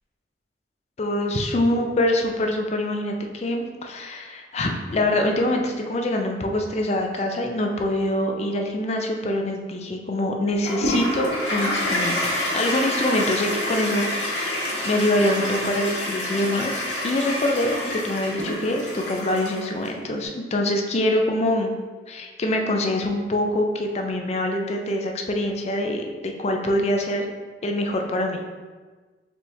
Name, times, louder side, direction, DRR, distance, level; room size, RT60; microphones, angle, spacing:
voice 1, 1.0-12.2 12.5-14.6 14.8-21.7 22.1-27.3 27.6-28.4, left 1 dB, 35° left, 2 dB, 0.4 m, -24 dB
Toilet flush, 10.7-19.9, left 1 dB, 85° left, 1.3 m, -27 dB
4.4 x 3.3 x 2.6 m, 1.4 s
head